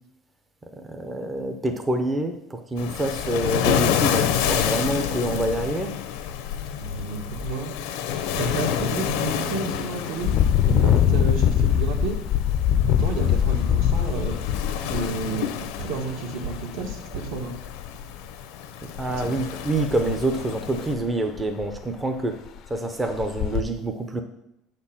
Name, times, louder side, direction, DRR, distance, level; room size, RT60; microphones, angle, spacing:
voice 1, 0.9-5.9 18.8-22.4 22.7-24.2, right 1 dB, 10° right, 5 dB, 0.5 m, -26 dB
Waves surf, 2.8-20.9, left 9 dB, 90° left, 0.8 m, -29 dB
voice 2, 6.8-7.7 8.4-10.3 10.6-12.2 12.8-14.4 14.8-17.6 19.0-19.6, right 4 dB, 75° right, 2 dB, 1.8 m, -31 dB
Engine, 8.1-8.3 8.8-8.9 10.2-16.0 16.8-16.9 17.4-18.1 19.9-20.0 20.4-20.5 21.0-21.1 21.4-21.9 22.5-22.6 23.2-23.6, left 10 dB, 45° left, 0.5 m, -22 dB
8.2 x 4.4 x 7.1 m, 0.80 s
cardioid pair, 170°, 0 cm